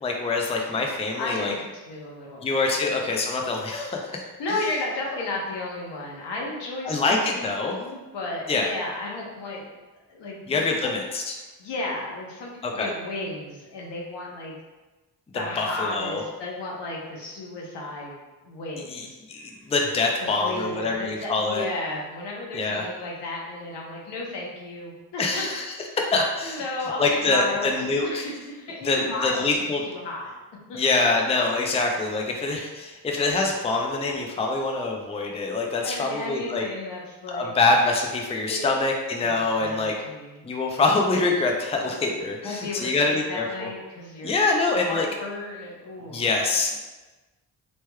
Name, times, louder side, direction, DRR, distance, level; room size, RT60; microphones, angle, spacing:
voice 1, 0.0-1.5 2.4-4.2 6.9-7.8 8.5-8.7 10.5-11.3 12.6-12.9 15.6-16.2 18.9-21.7 22.5-22.9 25.2-25.6 26.0-26.6 27.0-28.3 28.8-29.8 30.7-36.6 37.3-40.0 40.4-43.7 44.2-45.1 46.1-46.8, left 3 dB, 15° left, 1 dB, 0.4 m, -25 dB
voice 2, 1.2-3.0 4.4-9.6 10.1-10.9 11.6-14.6 15.3-18.2 18.4-19.7 20.2-26.0 26.4-27.8 28.0-29.4 29.9-30.4 30.7-30.8 35.8-37.5 38.5-38.7 39.2-40.4 42.4-44.4 44.7-46.3, left 2 dB, 80° left, -2 dB, 0.8 m, -34 dB
3.2 x 3.0 x 2.2 m, 1.2 s
cardioid pair, 60°, 42 cm